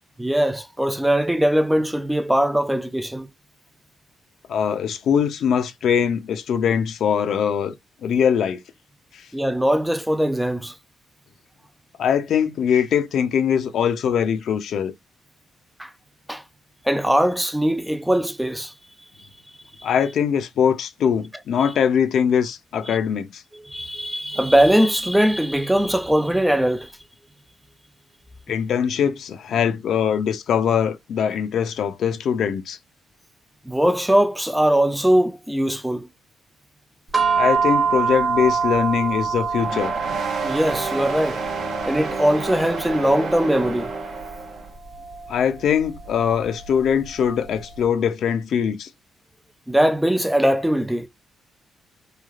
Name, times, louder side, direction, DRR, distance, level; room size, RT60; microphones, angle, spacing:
voice 1, 0.2-3.3 9.3-10.7 15.8-15.9 16.3-16.4 16.8-18.7 22.9-23.0 23.5-26.9 33.7-36.1 40.4-41.4 41.8-43.9 49.7-51.1, equal, 5° right, 0.3 m, -20 dB
voice 2, 4.5-7.7 8.0-8.6 12.0-14.9 19.8-23.4 28.5-32.8 37.4-39.9 45.3-48.9, left 8 dB, 70° left, 0.5 m, -22 dB
sound 1, 37.1-47.6, right 5 dB, 30° right, 1.1 m, -26 dB
sound 2, 39.6-44.7, right 4 dB, 65° right, 1.0 m, -30 dB
3.2 x 2.3 x 2.4 m
cardioid pair, 90°, 0 cm